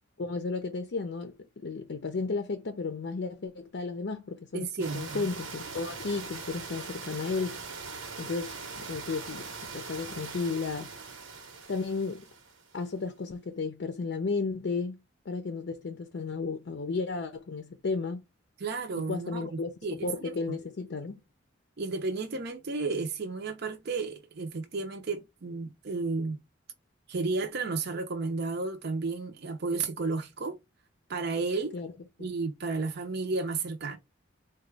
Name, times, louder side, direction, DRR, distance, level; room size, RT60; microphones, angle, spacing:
voice 1, 0.2-4.7 4.9-7.6 8.2-8.5 8.8-9.5 9.7-10.9 11.7-12.3 12.7-18.2 19.1-21.2 31.7-31.9 32.2-32.3, left 4 dB, 60° left, 0.5 m, -33 dB
voice 2, 4.5-5.2 18.6-20.3 21.8-26.4 27.1-30.6 31.1-31.7 32.2-34.0, right 3 dB, 55° right, 0.5 m, -32 dB
sound 1, 4.8-12.8, right 4 dB, 90° right, 1.0 m, -41 dB
3.9 x 2.2 x 3.3 m
head